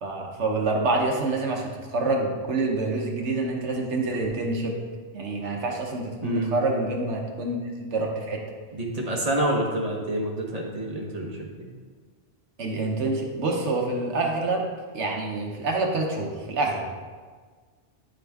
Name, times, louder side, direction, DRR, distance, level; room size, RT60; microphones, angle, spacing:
voice 1, 0.0-4.8 5.1-8.4 12.6-14.7 14.9-16.8, right 2 dB, 75° right, 1 dB, 1.2 m, -27 dB
voice 2, 8.7-11.5, right 1 dB, 35° right, -2 dB, 1.2 m, -27 dB
10.5 x 3.9 x 3.4 m, 1.5 s
omnidirectional pair, 1.2 m